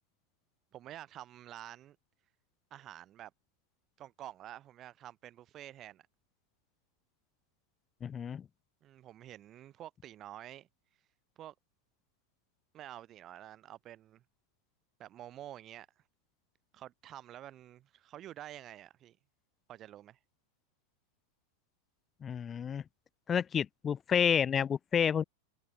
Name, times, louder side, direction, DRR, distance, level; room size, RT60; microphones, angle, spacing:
voice 1, 0.7-2.0 2.7-3.3 4.0-6.0 8.8-10.7 11.4-11.5 12.7-14.2 15.0-15.9 16.7-19.2 19.7-20.2, right 12 dB, 30° right, 1.7 m, -49 dB
voice 2, 8.0-8.4 22.2-22.8 23.3-25.2, left 8 dB, 20° left, 0.3 m, -30 dB
figure-of-eight pair, 90°, 0 cm